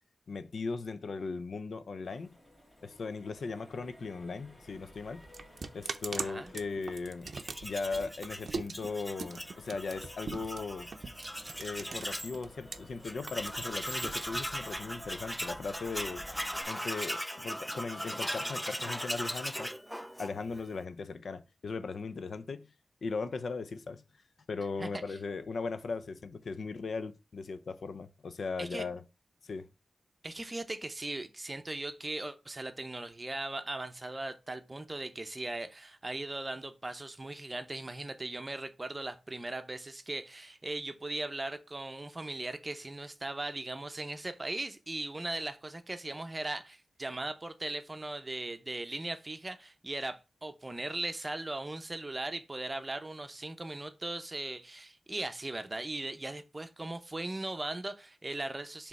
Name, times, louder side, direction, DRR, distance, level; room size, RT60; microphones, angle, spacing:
voice 1, 0.3-2.4 2.8-5.2 5.7-7.3 7.6-10.9 11.6-16.2 16.7-19.7 20.2-22.7 23.0-24.0 24.5-29.0 29.4-29.7, left 4 dB, 65° left, 0.5 m, -38 dB
Accelerating revving vroom, 2.0-16.6, left 1 dB, 20° left, 1.6 m, -55 dB
sound 1, 4.6-12.8 13.1-15.0, right 4 dB, 60° right, 0.5 m, -42 dB
voice 2, 6.1-6.5 24.8-25.2 28.6-28.9 30.2-58.9, right 2 dB, 20° right, 0.7 m, -38 dB
Tools, 7.2-12.4 12.7-12.8 13.0-20.6, equal, ahead, 0.3 m, -39 dB
5.3 x 3.4 x 5.3 m
wide cardioid pair, 135°, 0 cm